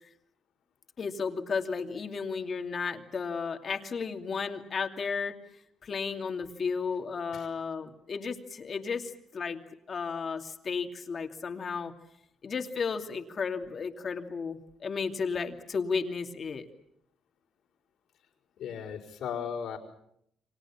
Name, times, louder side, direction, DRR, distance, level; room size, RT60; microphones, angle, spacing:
voice 1, 1.0-5.3 5.8-9.6 9.9-11.9 12.4-16.7, left 5 dB, 45° left, 5 dB, 2.7 m, -33 dB
voice 2, 18.6-19.8, left 7 dB, 80° left, -5 dB, 4.7 m, -36 dB
29.0 x 24.5 x 7.3 m, 0.75 s
cardioid pair, 90°, 0 cm